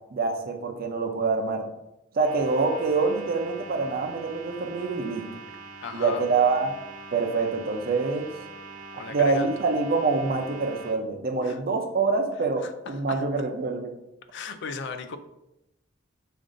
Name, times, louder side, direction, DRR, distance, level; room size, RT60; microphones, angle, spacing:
voice 1, 0.1-1.7 2.1-5.2 5.9-6.8 7.1-8.3 9.1-13.9, right 4 dB, 50° right, 5 dB, 0.6 m, -25 dB
sound 1, 2.1-11.0, right 4 dB, 85° right, 0.8 m, -43 dB
voice 2, 5.8-6.2 8.9-9.5 11.4-11.6 12.6-13.2 14.3-15.2, left 5 dB, 60° left, 10 dB, 0.4 m, -36 dB
5.2 x 2.5 x 3.8 m, 0.87 s
head